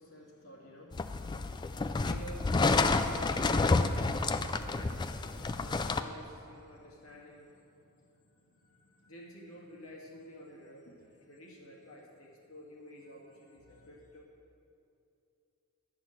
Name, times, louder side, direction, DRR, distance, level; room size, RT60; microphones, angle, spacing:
voice 1, 0.0-14.2, equal, 75° left, -4 dB, 2.2 m, -51 dB
sound 1, 0.9-6.0, left 3 dB, 20° left, 0.3 m, -29 dB
11.0 x 6.2 x 7.3 m, 2.6 s
head